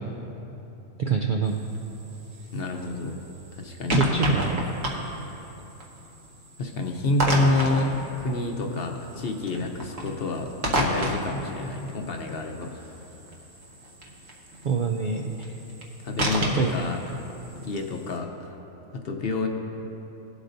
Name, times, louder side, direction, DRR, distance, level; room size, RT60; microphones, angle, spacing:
voice 1, 1.0-1.6 3.9-4.6 14.6-15.3 16.5-16.7, right 5 dB, 90° right, 2 dB, 0.4 m, -25 dB
sound 1, 1.4-18.2, equal, 65° right, 1.5 m, -32 dB
voice 2, 2.5-3.2 3.5-4.0 6.6-12.8 16.0-17.0 17.6-18.5 18.9-19.5, left 2 dB, 50° left, 3 dB, 0.8 m, -28 dB
18.0 x 8.0 x 2.6 m, 3.0 s
omnidirectional pair, 1.5 m